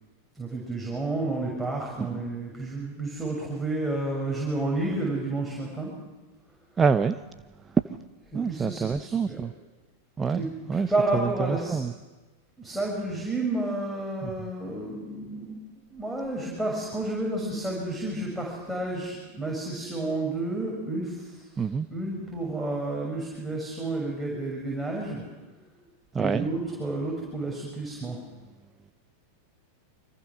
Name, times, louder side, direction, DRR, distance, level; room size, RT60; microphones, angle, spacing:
voice 1, 0.3-5.9 8.3-9.4 10.3-11.8 12.6-15.6 15.9-21.4 21.9-25.2 26.2-28.2, right 2 dB, ahead, -3 dB, 6.7 m, -31 dB
voice 2, 6.8-7.1 8.3-9.5 10.2-10.4 10.7-10.9 11.1-11.9 14.2-14.3 21.6-21.9 26.1-26.5, right 5 dB, 20° right, 11 dB, 0.7 m, -26 dB
29.5 x 25.5 x 6.4 m, 1.2 s
figure-of-eight pair, 90°, 0 cm